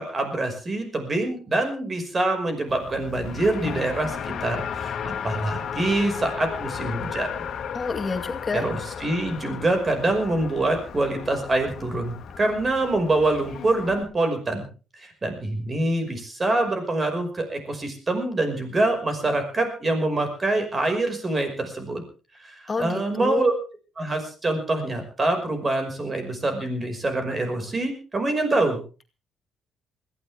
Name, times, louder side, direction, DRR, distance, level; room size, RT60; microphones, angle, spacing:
voice 1, 0.0-7.3 8.5-14.7 15.0-22.0 22.4-23.5 24.0-28.8, right 2 dB, 30° right, 6 dB, 5.6 m, -25 dB
Race car auto racing, 2.7-14.0, left 7 dB, 65° left, 2.0 m, -34 dB
voice 2, 7.7-8.7 22.7-23.4, left 4 dB, 30° left, 6 dB, 2.2 m, -28 dB
21.0 x 15.5 x 3.5 m, 0.35 s
cardioid pair, 90°, 0 cm